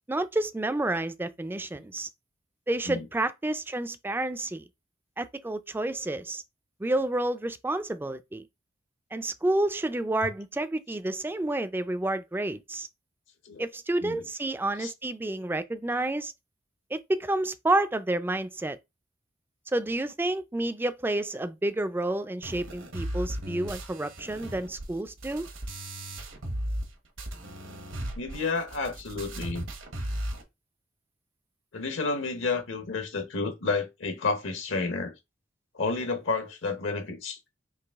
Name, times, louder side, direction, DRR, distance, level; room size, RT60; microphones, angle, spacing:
voice 1, 0.1-2.1 2.7-4.7 5.2-6.4 6.8-8.5 9.1-12.9 13.6-16.3 16.9-18.8 19.7-25.5, right 2 dB, 10° right, 0.3 m, -29 dB
sound 1, 22.4-26.9 27.2-30.4, right 1 dB, 75° right, 1.1 m, -36 dB
voice 2, 28.2-29.6 31.7-35.1 35.7-37.5, left 4 dB, 70° left, 1.0 m, -30 dB
4.8 x 2.8 x 3.5 m
head